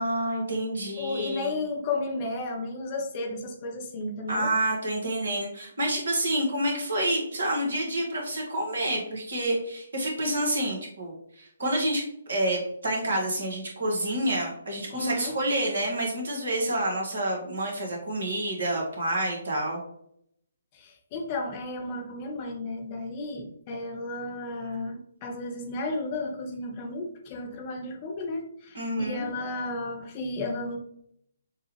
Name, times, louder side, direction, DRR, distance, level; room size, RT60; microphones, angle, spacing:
voice 1, 0.0-1.6 4.3-12.0 12.3-19.8 28.7-29.2, right 1 dB, 60° right, -1 dB, 1.4 m, -28 dB
voice 2, 1.0-4.5 14.9-15.4 20.7-30.8, left 2 dB, 30° left, 3 dB, 0.7 m, -33 dB
6.4 x 2.4 x 3.1 m, 0.70 s
figure-of-eight pair, 135°, 0 cm